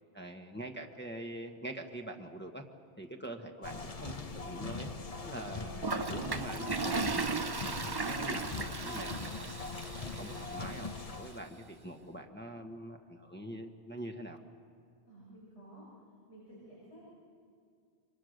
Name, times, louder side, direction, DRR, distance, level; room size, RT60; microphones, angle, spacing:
voice 1, 0.1-2.6 3.0-4.9 5.2-7.8 8.1-9.6 9.9-14.4, right 1 dB, 10° left, 2 dB, 1.3 m, -44 dB
sound 1, 3.6-11.4, left 3 dB, 35° left, 1.0 m, -41 dB
Toilet flush, 5.8-10.9, right 3 dB, 25° right, 0.6 m, -36 dB
voice 2, 15.1-15.9 16.3-17.0, right 1 dB, 90° left, -6 dB, 6.4 m, -54 dB
27.5 x 24.5 x 6.6 m, 2.3 s
omnidirectional pair, 1.1 m